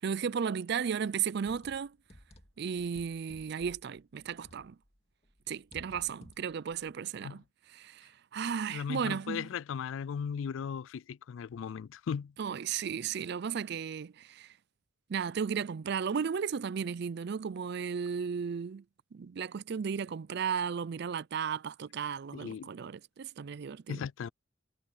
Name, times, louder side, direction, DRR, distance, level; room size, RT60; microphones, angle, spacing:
voice 1, 0.0-2.0 2.6-4.8 5.5-7.4 7.7-9.5 12.4-14.5 15.1-18.8 19.1-24.0, right 7 dB, 55° right, 0.4 m, -35 dB
sound 1, 1.3-5.0 5.2-6.9, equal, 30° left, 2.6 m, -56 dB
voice 2, 8.7-12.3 22.3-22.7 23.9-24.3, left 7 dB, 70° left, 0.3 m, -37 dB
head